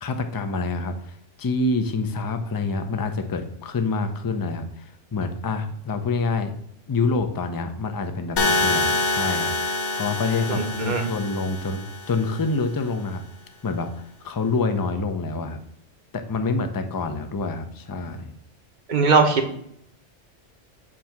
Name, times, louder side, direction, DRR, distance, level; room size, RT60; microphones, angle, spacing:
voice 1, 0.0-6.5 6.9-11.8 12.1-13.2 13.6-15.6 16.1-18.3, left 3 dB, 30° left, 8 dB, 0.4 m, -27 dB
sound 1, 8.4-12.4, left 2 dB, 80° left, 1.1 m, -26 dB
voice 2, 10.5-11.1 18.9-19.4, right 4 dB, 45° right, 4 dB, 0.9 m, -20 dB
7.5 x 2.8 x 5.8 m, 0.70 s
omnidirectional pair, 1.2 m